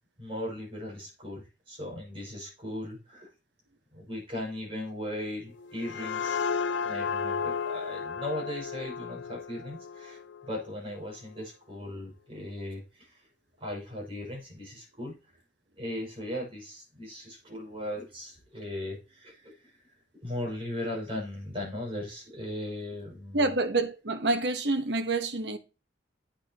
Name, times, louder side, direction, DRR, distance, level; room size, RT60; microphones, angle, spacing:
voice 1, 0.2-3.3 3.9-6.4 6.8-13.2 13.6-15.1 15.8-19.7 20.2-23.4, left 1 dB, 30° right, 6.3 m, -38 dB
sound 1, 5.5-11.0, left 6 dB, 75° left, 0.6 m, -33 dB
voice 2, 23.3-25.6, right 2 dB, 65° right, 1.1 m, -27 dB
10.5 x 8.7 x 3.0 m
head